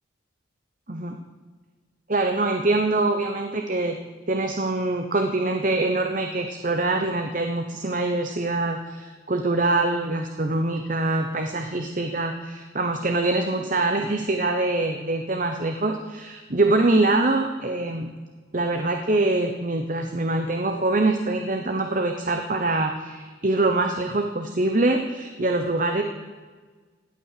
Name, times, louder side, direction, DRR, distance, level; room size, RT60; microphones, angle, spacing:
voice 1, 2.1-4.0 4.3-18.1 18.5-26.0, right 2 dB, 40° right, 5 dB, 1.0 m, -24 dB
16.5 x 10.0 x 6.7 m, 1.4 s
head